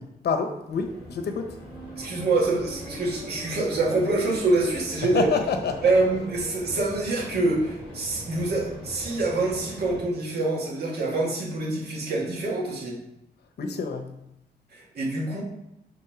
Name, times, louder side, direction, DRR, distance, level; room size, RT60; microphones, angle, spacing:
voice 1, 0.0-1.6 5.0-5.9 13.6-14.2, left 5 dB, 80° left, 6 dB, 0.9 m, -28 dB
sound 1, 0.7-10.1, equal, 30° right, 2.1 m, -41 dB
voice 2, 2.0-5.3 5.8-13.0 14.7-15.4, right 2 dB, 75° right, -3 dB, 1.8 m, -25 dB
5.3 x 3.7 x 5.8 m, 0.85 s
wide cardioid pair, 160°, 17 cm